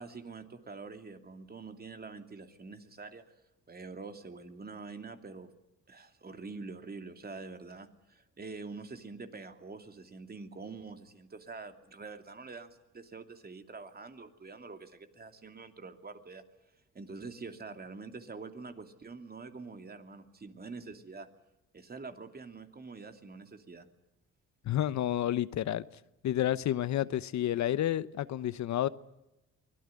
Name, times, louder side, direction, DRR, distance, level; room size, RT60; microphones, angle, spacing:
voice 1, 0.0-3.2 3.7-5.5 5.9-16.4 16.9-21.3 21.7-23.9, right 4 dB, 30° right, 7 dB, 2.8 m, -46 dB
voice 2, 24.6-25.8 26.2-28.9, left 12 dB, 65° left, 16 dB, 0.9 m, -30 dB
24.0 x 18.5 x 9.8 m, 0.94 s
cardioid pair, 90°, 30 cm